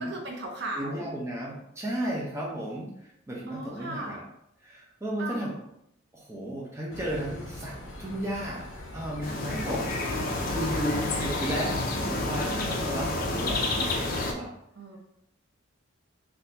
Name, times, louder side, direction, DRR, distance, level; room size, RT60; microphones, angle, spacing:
voice 1, 0.0-1.0 3.5-4.2 5.2-5.5 9.3-9.9 14.7-15.0, right 1 dB, 55° right, 1 dB, 0.7 m, -37 dB
voice 2, 0.7-4.2 4.6-5.6 6.1-8.7 8.9-9.8 10.5-14.5, right 1 dB, 15° right, -3 dB, 0.7 m, -34 dB
sound 1, 6.9-14.3, left 1 dB, 75° left, 0.9 m, -42 dB
sound 2, 9.2-14.3, left 2 dB, 45° left, 0.5 m, -29 dB
4.1 x 2.8 x 2.7 m, 0.78 s
head